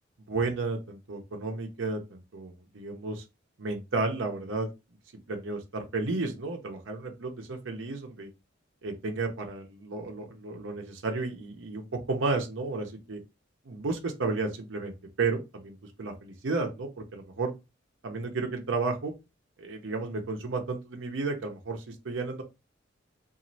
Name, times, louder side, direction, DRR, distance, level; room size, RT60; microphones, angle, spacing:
voice 1, 0.3-3.2 3.6-4.7 5.3-8.3 8.8-13.2 13.6-17.5 18.0-19.1 19.6-22.4, right 3 dB, 75° right, 3 dB, 0.6 m, -32 dB
3.0 x 2.4 x 2.6 m, 0.24 s
head